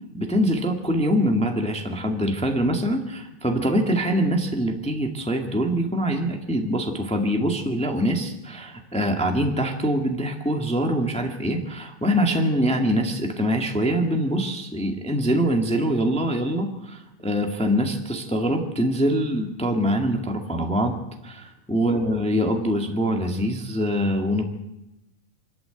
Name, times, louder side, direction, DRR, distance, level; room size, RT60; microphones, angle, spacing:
voice 1, 0.1-21.4 21.7-24.4, equal, 5° left, 3 dB, 0.8 m, -24 dB
24.5 x 13.0 x 9.0 m, 0.92 s
omnidirectional pair, 4.0 m